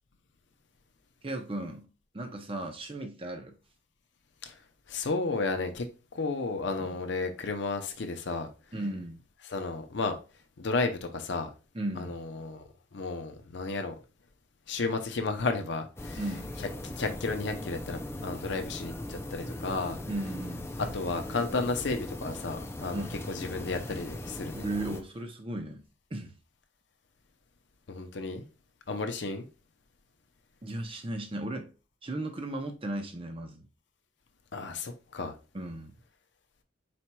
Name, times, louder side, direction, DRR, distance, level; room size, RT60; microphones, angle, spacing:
voice 1, 1.2-1.9 2.1-3.6 6.8-6.9 8.7-9.2 11.7-12.1 16.2-16.5 20.1-20.7 22.9-23.2 24.5-25.8 26.1-26.3 30.6-31.7 32.0-33.7 35.5-35.9, right 1 dB, 25° right, 0.6 m, -36 dB
voice 2, 4.9-8.5 9.5-10.2 10.6-11.5 12.0-12.6 12.9-13.9 14.7-16.2 16.6-16.7 17.0-20.0 20.9-24.7 27.9-28.4 28.9-29.5 34.5-35.3, left 3 dB, 65° left, 0.6 m, -33 dB
sound 1, 16.0-25.0, left 1 dB, 15° left, 0.3 m, -39 dB
4.4 x 4.2 x 2.2 m
head